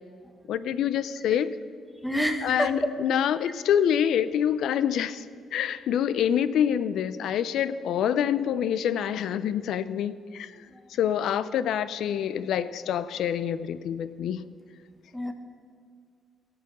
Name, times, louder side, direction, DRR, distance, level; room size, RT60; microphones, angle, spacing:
voice 1, 0.5-1.5 2.4-5.2 5.5-10.5 11.0-14.4, left 9 dB, 75° left, 15 dB, 0.4 m, -26 dB
voice 2, 2.0-2.7 10.7-10.8 15.1-15.3, equal, 5° left, 6 dB, 1.1 m, -28 dB
17.5 x 6.7 x 4.1 m, 2.2 s
cardioid pair, 90°, 0 cm